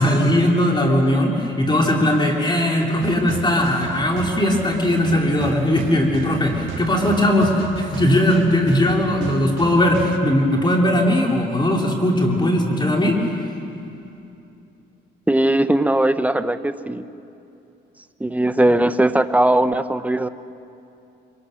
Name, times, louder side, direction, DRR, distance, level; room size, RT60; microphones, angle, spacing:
voice 1, 0.0-13.5, left 1 dB, 25° left, 0 dB, 2.9 m, -19 dB
sound 1, 3.0-10.2, right 7 dB, 75° right, 1.5 m, -33 dB
voice 2, 15.3-17.0 18.2-20.3, right 1 dB, 5° right, 11 dB, 0.8 m, -19 dB
26.0 x 23.0 x 6.4 m, 2.8 s
cardioid pair, 90°, 20 cm